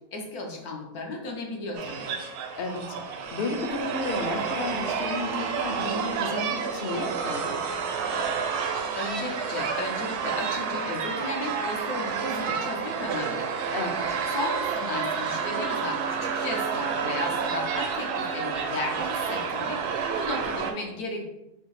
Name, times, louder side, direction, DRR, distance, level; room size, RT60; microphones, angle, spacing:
voice 1, 0.0-2.1 8.9-13.5 14.3-21.2, left 2 dB, 80° left, 1 dB, 1.3 m, -35 dB
sound 1, 1.7-20.7, right 6 dB, 90° right, 1.1 m, -30 dB
voice 2, 2.6-7.6 10.6-10.9 13.7-14.2, left 3 dB, 60° left, 3 dB, 0.6 m, -33 dB
5.3 x 2.8 x 3.1 m, 0.91 s
omnidirectional pair, 1.6 m